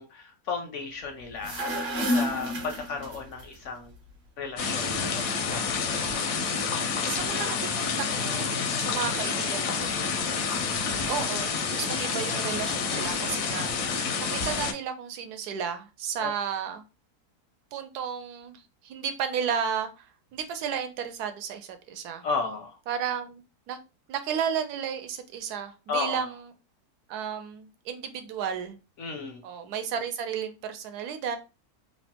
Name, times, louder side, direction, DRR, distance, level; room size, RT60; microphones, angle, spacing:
voice 1, 0.0-1.8 2.0-3.9 4.4-6.0 12.8-13.3 16.2-16.3 22.2-22.8 25.9-26.3 29.0-29.4, left 4 dB, 70° left, 5 dB, 0.7 m, -34 dB
sound 1, 1.3-3.4, equal, 50° right, 0.9 m, -29 dB
sound 2, 4.6-14.7, left 5 dB, 85° left, 1.2 m, -28 dB
voice 2, 7.1-7.9 8.2-8.5 8.8-10.0 11.1-13.7 14.3-16.8 17.7-18.6 18.8-19.9 20.3-22.2 22.9-23.4 23.7-23.8 24.1-26.4 27.1-28.8 29.4-31.4, right 7 dB, 80° right, 8 dB, 1.1 m, -33 dB
3.2 x 2.1 x 2.7 m, 0.30 s
omnidirectional pair, 1.7 m